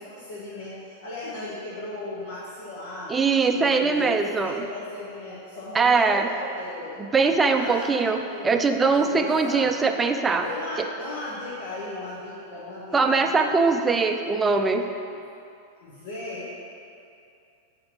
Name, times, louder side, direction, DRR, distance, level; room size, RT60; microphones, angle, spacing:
voice 1, 0.0-3.2 3.5-7.0 7.5-8.6 8.9-9.7 10.3-13.3 13.6-13.8 15.8-16.5, left 2 dB, 60° left, -9 dB, 1.6 m, -37 dB
voice 2, 3.1-4.5 5.7-6.3 7.1-10.4 12.9-14.8, right 4 dB, 15° right, 5 dB, 0.5 m, -21 dB
8.6 x 4.6 x 5.9 m, 2.6 s
figure-of-eight pair, 90°, 0 cm